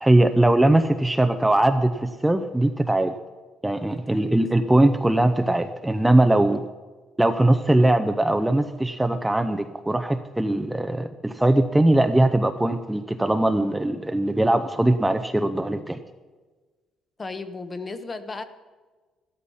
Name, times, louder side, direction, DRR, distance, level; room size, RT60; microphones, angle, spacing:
voice 1, 0.0-3.1 3.6-6.6 7.2-16.0, right 1 dB, 10° right, 8 dB, 0.6 m, -20 dB
voice 2, 17.2-18.4, left 3 dB, 25° left, 10 dB, 1.0 m, -35 dB
13.5 x 13.0 x 5.6 m, 1.3 s
cardioid pair, 120°, 0 cm